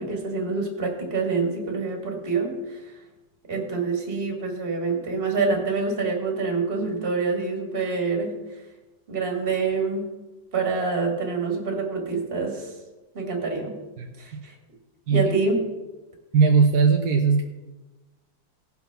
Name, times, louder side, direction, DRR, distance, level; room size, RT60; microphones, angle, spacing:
voice 1, 0.0-2.8 3.5-8.3 9.1-10.0 10.5-12.7 13.1-13.7 14.2-14.5 15.1-15.6, right 4 dB, 30° right, 1 dB, 2.2 m, -26 dB
voice 2, 16.3-17.4, right 5 dB, 60° right, 1 dB, 1.4 m, -19 dB
17.5 x 6.1 x 6.0 m, 1.1 s
omnidirectional pair, 2.1 m